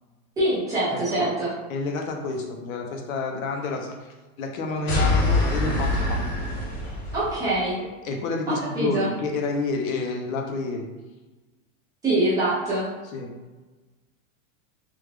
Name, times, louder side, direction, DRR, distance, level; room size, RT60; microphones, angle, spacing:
voice 1, 0.4-1.5 7.1-7.8 8.8-9.1 12.0-12.8, right 1 dB, 10° right, -11 dB, 0.6 m, -24 dB
voice 2, 0.9-1.3 1.7-6.2 8.0-10.9 13.1-13.3, left 3 dB, 80° left, 2 dB, 0.8 m, -29 dB
Explosion Droll, 4.9-7.4, left 2 dB, 30° left, 0.8 m, -24 dB
3.4 x 2.3 x 3.3 m, 1.2 s
supercardioid pair, 175°, 41 cm